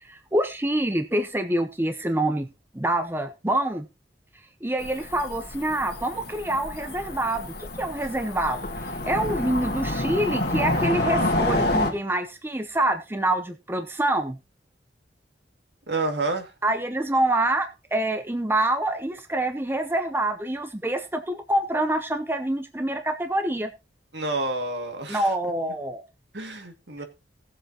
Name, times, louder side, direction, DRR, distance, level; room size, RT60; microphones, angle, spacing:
voice 1, 0.0-2.5 2.7-3.9 4.6-8.6 9.0-14.4 16.6-23.7 25.1-26.0, right 1 dB, 10° right, 0.7 m, -26 dB
Cricket / Motor vehicle (road), 4.8-11.9, left 1 dB, 60° left, 1.9 m, -28 dB
voice 2, 15.9-16.5 24.1-25.3 26.3-27.0, right 2 dB, 65° right, 2.1 m, -29 dB
18.5 x 7.5 x 2.9 m
head